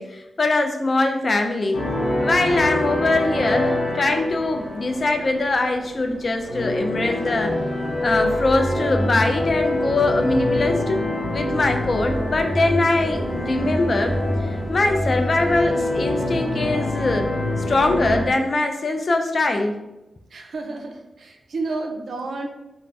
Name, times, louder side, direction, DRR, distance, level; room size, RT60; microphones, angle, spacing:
voice 1, 0.0-1.8 2.2-7.5 8.0-11.0 11.3-14.1 14.4-17.3 17.7-19.8, left 2 dB, 50° left, 5 dB, 0.4 m, -22 dB
sound 1, 1.7-18.3, left 1 dB, 70° left, 0.7 m, -25 dB
voice 2, 20.3-22.5, right 3 dB, 75° right, 2 dB, 0.4 m, -31 dB
2.5 x 2.1 x 3.3 m, 0.95 s
cardioid pair, 60°, 0 cm